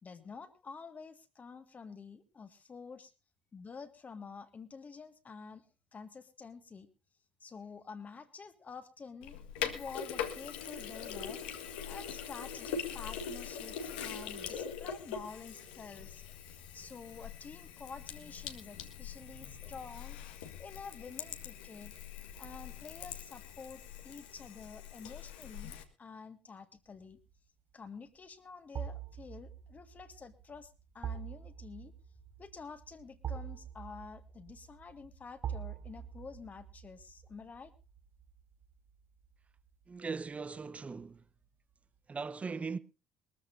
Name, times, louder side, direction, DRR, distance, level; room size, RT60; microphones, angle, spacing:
voice 1, 0.0-3.1 3.5-6.9 7.4-11.4 11.9-22.0 22.3-27.2 27.7-31.9 32.4-37.7, left 5 dB, 30° left, 1.8 m, -49 dB
Sink (filling or washing), 9.2-25.8, left 7 dB, 70° left, 1.8 m, -43 dB
sound 1, 27.0-27.3 28.7-39.7 40.1-40.2, right 8 dB, 45° right, 4.2 m, -45 dB
voice 2, 39.9-41.2 42.1-42.8, right 4 dB, 25° right, 1.0 m, -39 dB
22.0 x 14.0 x 2.7 m
figure-of-eight pair, 55°, 5 cm